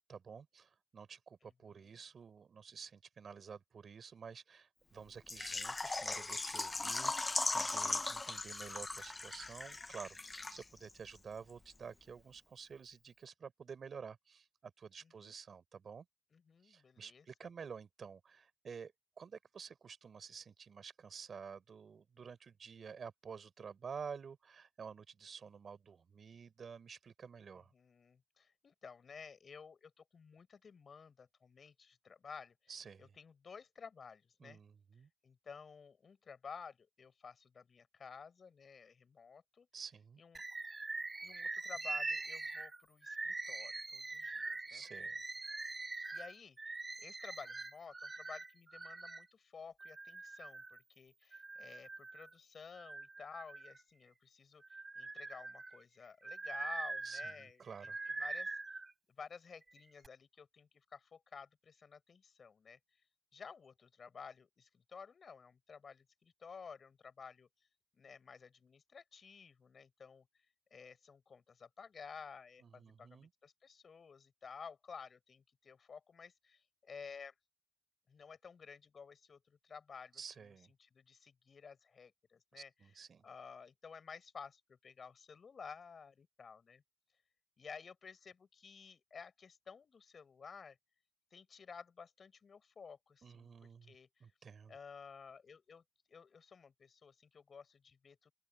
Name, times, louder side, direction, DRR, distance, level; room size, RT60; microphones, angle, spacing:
voice 1, 0.1-16.0 16.6-18.9 19.2-27.7 32.7-33.1 34.4-35.1 39.7-40.2 44.7-45.2 57.0-58.0 72.6-73.3 80.1-80.7 82.5-83.2 93.2-93.9 94.2-94.8, right 6 dB, 75° right, 5.1 m, -51 dB
voice 2, 1.4-2.0 15.0-15.4 16.3-17.5 27.7-32.5 33.0-34.6 35.2-39.7 40.2-40.4 41.2-44.8 46.1-58.6 59.2-62.8 63.3-67.5 67.9-70.3 70.7-77.3 78.1-80.5 80.8-82.9 83.2-86.8 87.6-90.8 91.3-94.2 94.7-95.8 96.1-98.3, left 6 dB, 70° left, 6.7 m, -53 dB
Water / Liquid, 5.3-10.9 11.2-11.3 11.7-11.8, left 3 dB, 40° left, 1.0 m, -38 dB
Bird, 40.3-49.3 49.8-50.8 51.3-52.3 52.8-54.1 54.6-58.9 59.6-60.1, right 3 dB, 40° right, 4.1 m, -43 dB
open air
cardioid pair, 55°, 0 cm